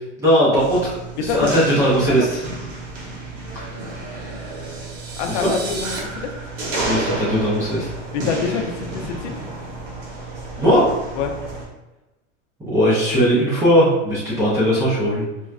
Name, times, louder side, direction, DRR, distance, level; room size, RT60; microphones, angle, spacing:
voice 1, 0.2-2.4 3.5-3.6 5.3-5.5 6.8-7.9 10.6-11.0 12.7-15.3, equal, 10° right, -9 dB, 0.4 m, -18 dB
sound 1, 0.6-11.6, right 2 dB, 90° right, 1.3 m, -31 dB
voice 2, 1.3-1.8 2.0-2.1 5.1-6.3 8.1-9.4 11.2-11.3 14.8-14.9, left 6 dB, 70° left, 4 dB, 0.5 m, -26 dB
sound 2, 4.1-6.0, right 4 dB, 70° right, 0.9 m, -35 dB
4.4 x 2.0 x 2.4 m, 1.0 s
supercardioid pair, 155°, 36 cm